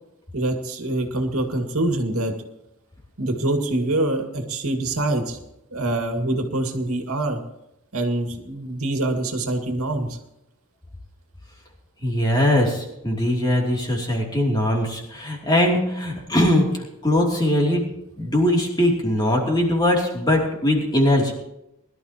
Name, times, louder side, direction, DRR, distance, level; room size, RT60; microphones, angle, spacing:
voice 1, 0.3-2.3 3.2-5.4 5.7-7.4 7.9-10.2, right 2 dB, 75° right, 3 dB, 2.1 m, -25 dB
voice 2, 12.0-17.9 18.2-21.3, left 1 dB, 20° left, -1 dB, 3.0 m, -21 dB
22.0 x 12.5 x 3.0 m, 0.84 s
head